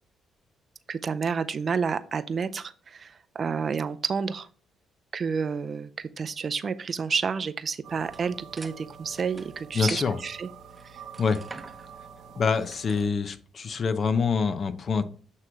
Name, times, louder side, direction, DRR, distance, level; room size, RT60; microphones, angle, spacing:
voice 1, 0.9-4.5 5.1-10.5 10.8-11.0, right 5 dB, 50° right, 13 dB, 0.5 m, -30 dB
sound 1, 7.8-13.1, right 7 dB, 65° right, 0.9 m, -47 dB
sound 2, 8.0-13.2, right 3 dB, 25° right, 0.8 m, -46 dB
voice 2, 9.7-10.2 11.2-11.4 12.4-15.0, left 5 dB, 50° left, 11 dB, 0.8 m, -25 dB
8.3 x 3.2 x 4.8 m, 0.42 s
supercardioid pair, 55°, 0 cm